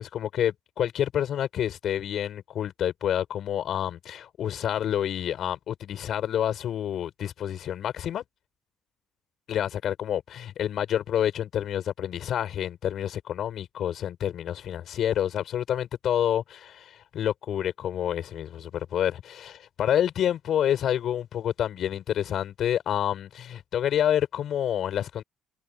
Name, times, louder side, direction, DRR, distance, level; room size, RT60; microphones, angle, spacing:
voice 1, 0.0-8.2 9.5-25.2, left 10 dB, 55° left, 6.7 m, -28 dB
cardioid pair, 140°, 0 cm